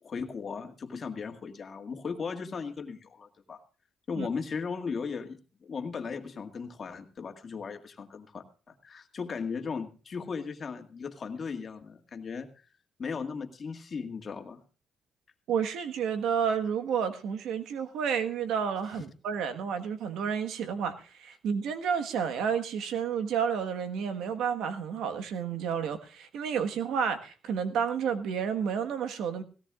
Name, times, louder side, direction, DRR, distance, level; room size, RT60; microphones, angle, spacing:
voice 1, 0.0-3.6 4.1-12.5 13.0-14.6, left 5 dB, 45° left, 1.9 m, -37 dB
voice 2, 15.5-29.4, right 7 dB, 80° right, 1.4 m, -30 dB
17.5 x 17.0 x 2.4 m
cardioid pair, 90°, 0 cm